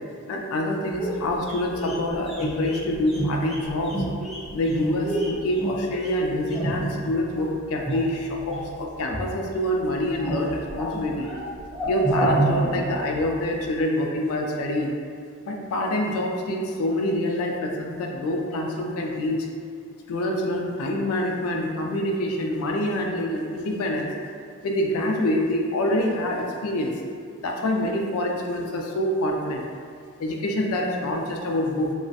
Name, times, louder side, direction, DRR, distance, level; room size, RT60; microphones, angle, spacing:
voice 1, 0.3-4.0 4.5-11.3 11.9-14.9 15.5-19.5 20.1-24.1 24.6-26.9 27.4-29.7 30.2-31.9, left 1 dB, 75° left, 0 dB, 0.3 m, -26 dB
sound 1, 1.0-7.5 7.8-8.7 9.0-9.7 10.0-13.4 13.6-13.7, right 2 dB, ahead, 0.4 m, -29 dB
2.3 x 2.1 x 2.5 m, 2.2 s
head